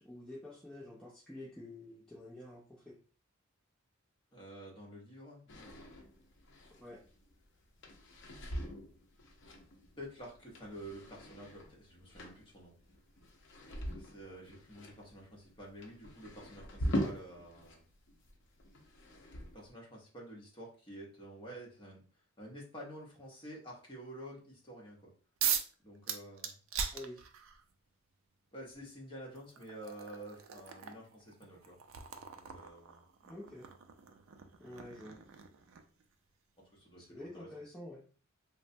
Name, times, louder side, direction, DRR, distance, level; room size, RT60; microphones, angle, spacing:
voice 1, 0.0-3.0 6.8-7.0 26.9-27.2 33.2-33.7 34.6-35.2 37.0-38.1, left 1 dB, 5° left, -4 dB, 0.4 m, -48 dB
voice 2, 4.3-5.8 10.0-12.8 14.0-17.9 19.5-25.1 25.8-26.6 28.5-31.8 32.4-33.0 36.6-37.5, right 1 dB, 25° left, -3 dB, 0.9 m, -50 dB
sound 1, 5.5-17.8 18.1-19.7, equal, 60° left, 0.6 m, -42 dB
sound 2, 25.4-25.7 26.1-27.6 28.7-28.8 29.4-36.0, right 7 dB, 65° right, 0.4 m, -40 dB
3.0 x 2.0 x 2.6 m, 0.38 s
head